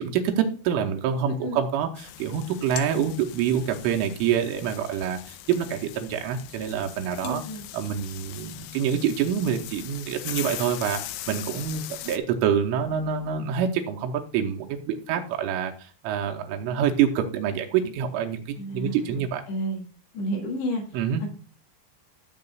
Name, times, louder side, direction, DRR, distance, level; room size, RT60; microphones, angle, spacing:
voice 1, 0.0-7.4 7.7-19.4 20.9-21.3, right 8 dB, 85° right, 2 dB, 3.2 m, -26 dB
voice 2, 1.3-1.6 7.2-7.7 18.6-19.8 20.1-21.3, equal, 65° left, 0 dB, 3.5 m, -32 dB
sound 1, 2.0-12.2, left 13 dB, 80° left, 2.9 m, -40 dB
16.5 x 6.6 x 2.3 m, 0.39 s
omnidirectional pair, 5.7 m